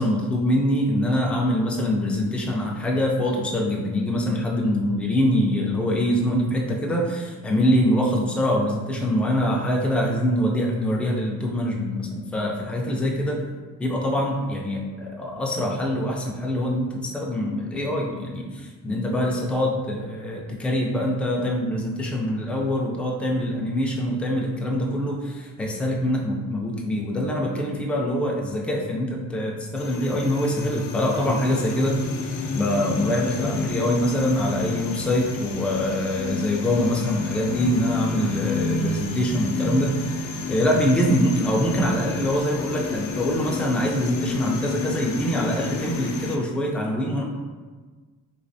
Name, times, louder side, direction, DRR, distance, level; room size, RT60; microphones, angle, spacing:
voice 1, 0.0-13.4 13.8-32.0 32.5-47.2, equal, 5° left, -2 dB, 0.3 m, -24 dB
sound 1, 29.8-46.4, left 3 dB, 80° left, 0.5 m, -31 dB
3.3 x 3.2 x 2.6 m, 1.4 s
cardioid pair, 145°, 33 cm